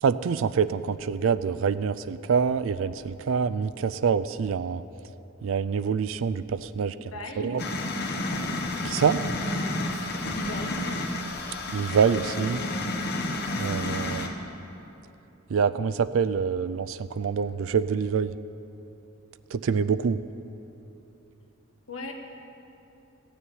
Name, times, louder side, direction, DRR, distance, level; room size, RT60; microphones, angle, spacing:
voice 1, 0.0-4.8 5.4-6.9 7.4-7.6 8.8-9.2 11.7-12.7 13.5-14.3 15.5-18.3 19.5-20.2, right 6 dB, 65° right, 14 dB, 0.4 m, -26 dB
voice 2, 7.1-7.6 10.3-10.9 21.9-22.1, left 1 dB, 75° left, 3 dB, 1.5 m, -37 dB
sound 1, 7.6-14.3, left 2 dB, 50° left, 1.2 m, -30 dB
15.5 x 6.9 x 9.1 m, 3.0 s
head